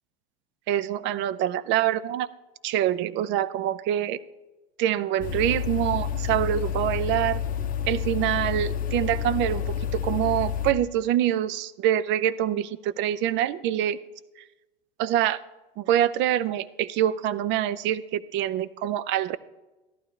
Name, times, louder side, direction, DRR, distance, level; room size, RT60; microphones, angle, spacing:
voice 1, 0.7-2.3 2.6-4.2 4.8-7.4 7.9-9.6 9.9-14.0 15.0-15.4 15.8-19.4, right 11 dB, 40° right, 17 dB, 0.5 m, -25 dB
sound 1, 5.2-10.7, left 8 dB, 30° left, 0.9 m, -29 dB
14.0 x 11.5 x 3.3 m, 1.1 s
hypercardioid pair, 105°, 29 cm